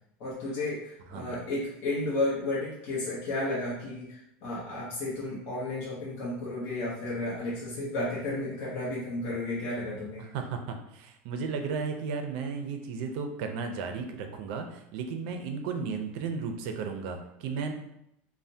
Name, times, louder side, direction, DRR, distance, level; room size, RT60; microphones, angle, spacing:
voice 1, 0.2-10.3, left 2 dB, 45° left, -7 dB, 0.8 m, -33 dB
voice 2, 10.2-17.7, right 5 dB, 60° right, 5 dB, 0.4 m, -34 dB
3.2 x 2.1 x 2.7 m, 0.79 s
supercardioid pair, 160°, 6 cm